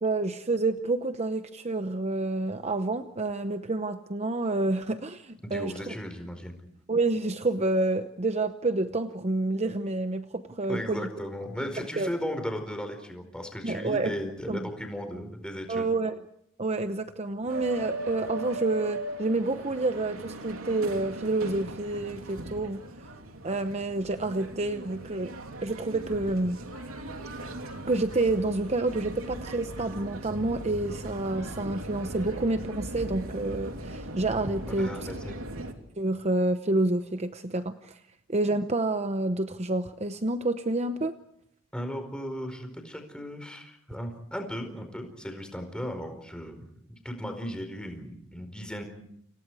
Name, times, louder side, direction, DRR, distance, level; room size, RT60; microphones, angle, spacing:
voice 1, 0.0-6.0 6.9-11.1 11.8-12.1 13.6-14.2 14.5-14.6 15.7-16.2 16.6-22.8 23.4-25.3 25.6-26.6 27.9-35.1 36.0-38.0 38.3-41.2, right 2 dB, 35° right, 9 dB, 0.9 m, -28 dB
voice 2, 5.4-6.5 10.7-15.9 34.7-35.3 41.7-48.8, equal, 5° left, 6 dB, 4.8 m, -36 dB
sound 1, 17.5-35.7, right 1 dB, 90° right, 3.1 m, -39 dB
30.0 x 27.0 x 4.9 m, 0.72 s
head